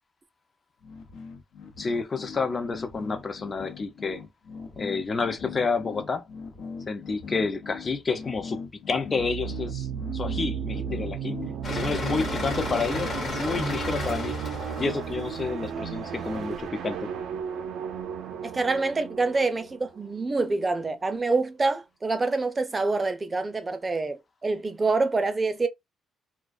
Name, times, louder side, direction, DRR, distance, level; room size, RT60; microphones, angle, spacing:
sound 1, 0.8-13.4, left 5 dB, 75° left, 0.6 m, -41 dB
voice 1, 1.8-4.2 4.8-6.2 6.9-8.6 8.9-9.9 10.1-11.4 11.7-14.4 14.8-17.1, left 4 dB, 35° left, 0.5 m, -29 dB
sound 2, 9.2-20.7, right 8 dB, 80° right, 0.4 m, -34 dB
sound 3, 11.6-16.6, left 3 dB, 50° left, 1.1 m, -34 dB
voice 2, 18.4-25.7, right 3 dB, 25° right, 0.5 m, -26 dB
2.4 x 2.2 x 2.4 m
cardioid pair, 90°, 0 cm